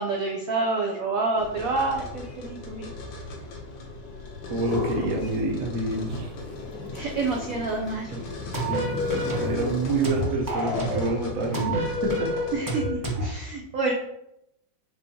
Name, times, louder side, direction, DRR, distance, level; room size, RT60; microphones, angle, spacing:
voice 1, 0.0-2.9 6.9-8.2 12.5-13.9, right 3 dB, 80° right, -1 dB, 0.7 m, -28 dB
sound 1, 1.4-12.6, left 2 dB, 75° left, 1.6 m, -39 dB
sound 2, 4.4-5.7 5.9-10.3, left 2 dB, 60° left, 1.2 m, -36 dB
voice 2, 4.5-6.3 8.7-12.3, right 2 dB, 55° right, 0 dB, 1.0 m, -28 dB
sound 3, 8.5-9.6 10.0-11.1 11.5-13.3, equal, 30° right, 0.3 m, -28 dB
6.4 x 2.7 x 2.8 m, 0.83 s
omnidirectional pair, 2.2 m